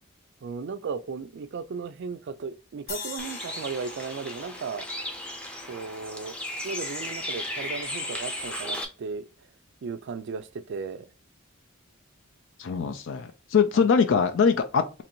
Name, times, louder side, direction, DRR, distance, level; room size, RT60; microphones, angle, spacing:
voice 1, 0.4-4.9 5.7-6.4 6.6-9.3 9.8-11.1 12.8-13.0 13.7-13.8, right 5 dB, 55° right, 0.4 m, -35 dB
sound 1, 2.9-6.2, left 5 dB, 45° left, 0.8 m, -42 dB
Bird, 3.2-8.9, left 1 dB, 5° left, 0.5 m, -35 dB
voice 2, 12.6-15.0, left 6 dB, 60° left, 0.4 m, -23 dB
3.0 x 2.6 x 4.4 m
head